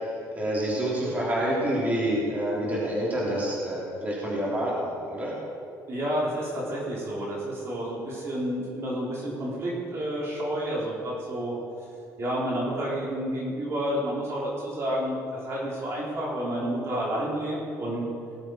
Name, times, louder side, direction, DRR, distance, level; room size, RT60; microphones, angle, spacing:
voice 1, 0.3-5.3, right 1 dB, 25° right, -6 dB, 3.3 m, -27 dB
voice 2, 5.9-11.5 12.2-18.0, equal, 40° right, -5 dB, 3.4 m, -30 dB
18.5 x 7.9 x 4.5 m, 2.4 s
cardioid pair, 130°, 7 cm